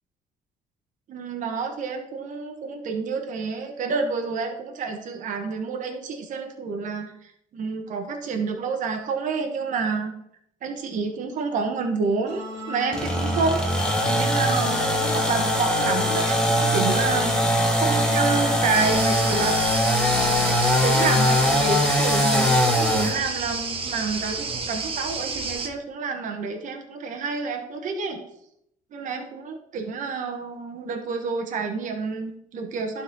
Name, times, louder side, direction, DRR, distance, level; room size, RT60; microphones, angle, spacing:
voice 1, 1.1-10.1 10.6-13.6 14.0-17.4 17.7-19.8 20.8-28.2 28.9-33.0, right 4 dB, 60° right, 4 dB, 1.3 m, -29 dB
sound 1, 12.2-23.0, left 1 dB, 25° right, 2.7 m, -33 dB
sound 2, 12.9-23.2, left 1 dB, 5° left, 1.4 m, -22 dB
sound 3, 18.7-25.7, right 4 dB, 40° right, 1.1 m, -31 dB
11.5 x 4.1 x 4.0 m, 0.74 s
cardioid pair, 95°, 14 cm